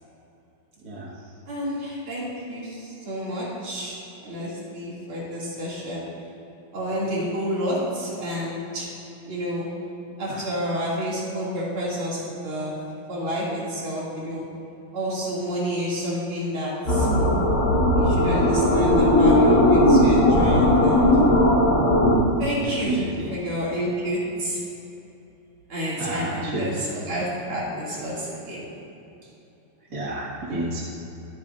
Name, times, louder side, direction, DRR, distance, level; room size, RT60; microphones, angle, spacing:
voice 1, 1.5-6.1 6.7-8.9 9.3-9.7 10.2-12.8 13.1-14.5 14.9-17.1 17.9-21.1 22.4-23.0 23.3-24.6 25.7-28.7, equal, 80° right, -7 dB, 3.5 m, -29 dB
sound 1, 16.9-22.1, left 1 dB, 40° left, 3.6 m, -18 dB
voice 2, 22.6-23.3 26.0-26.6 29.9-30.8, right 2 dB, 45° right, -6 dB, 2.3 m, -30 dB
24.0 x 8.8 x 2.6 m, 2.9 s
omnidirectional pair, 2.3 m